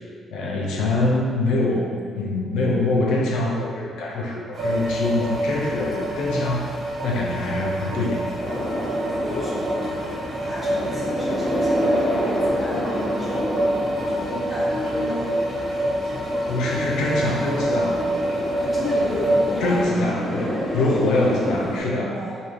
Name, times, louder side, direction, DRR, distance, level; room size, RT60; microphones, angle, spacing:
voice 1, 0.3-6.8 7.0-8.3 16.5-18.0 19.6-22.2, left 2 dB, 85° left, -2 dB, 0.5 m, -24 dB
sound 1, 4.5-19.8, right 1 dB, 50° right, 1.4 m, -26 dB
sound 2, 8.4-21.8, left 1 dB, 35° left, 1.0 m, -30 dB
voice 2, 9.1-9.9 10.4-15.7 18.6-19.8 20.3-20.6 22.0-22.4, left 1 dB, 10° left, -8 dB, 1.1 m, -32 dB
3.1 x 2.6 x 2.5 m, 2.1 s
cardioid pair, 90°, 0 cm